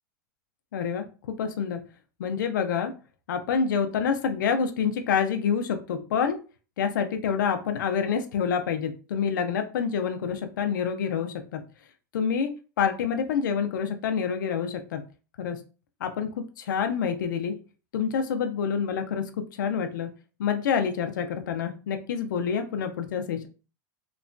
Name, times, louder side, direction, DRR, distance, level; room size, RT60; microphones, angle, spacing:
voice 1, 0.7-1.8 2.2-2.9 3.3-6.4 6.8-11.6 12.1-15.0 15.4-15.6 16.0-17.6 17.9-20.1 20.4-23.5, left 7 dB, 90° left, 7 dB, 0.5 m, -27 dB
3.0 x 2.1 x 2.5 m, 0.34 s
supercardioid pair, 130°, 10 cm